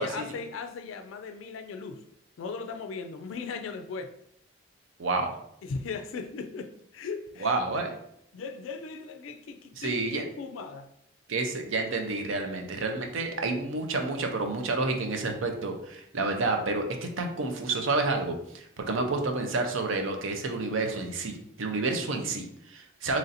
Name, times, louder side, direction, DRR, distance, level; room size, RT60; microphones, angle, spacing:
voice 1, 0.0-2.0 2.4-4.1 5.6-7.8 8.3-10.9, left 4 dB, 75° left, 0.3 m, -38 dB
voice 2, 5.0-5.4 7.4-7.9 9.8-10.2 11.3-23.2, right 3 dB, 75° right, 0.6 m, -29 dB
3.1 x 2.6 x 4.0 m
head